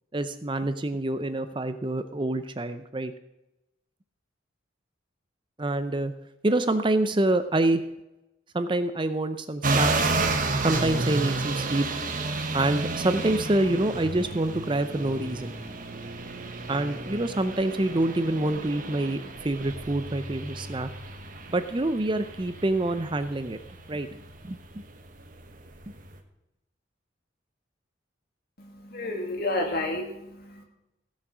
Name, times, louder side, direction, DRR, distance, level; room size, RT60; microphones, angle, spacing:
voice 1, 0.1-3.1 5.6-6.1 6.4-7.8 8.5-10.1 10.6-11.9 12.5-15.5 16.7-20.9 21.5-23.6 23.9-24.1 24.4-24.6, right 2 dB, 25° right, 10 dB, 0.6 m, -26 dB
sound 1, 9.6-26.2, right 3 dB, 40° right, 1.3 m, -32 dB
voice 2, 28.6-30.6, left 2 dB, 50° left, 3 dB, 2.3 m, -31 dB
16.0 x 7.4 x 6.2 m, 0.93 s
head